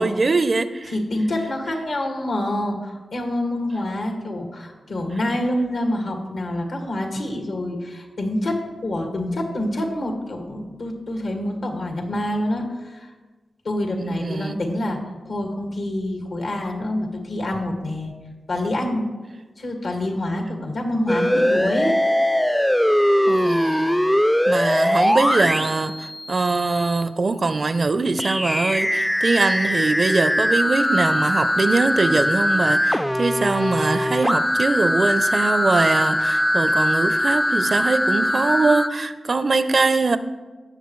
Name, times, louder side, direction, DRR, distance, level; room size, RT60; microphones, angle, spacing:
voice 1, 0.0-0.9 13.9-14.6 23.3-24.0 24.5-40.2, right 3 dB, 55° right, 12 dB, 0.6 m, -22 dB
voice 2, 0.9-13.1 13.6-15.0 15.3-18.1 18.5-19.0 19.6-21.9, left 1 dB, 80° left, 1 dB, 2.0 m, -26 dB
sound 1, 21.1-27.0 28.2-38.9, equal, 5° left, 0.4 m, -21 dB
17.5 x 6.6 x 3.2 m, 1.3 s
cardioid pair, 50°, 0 cm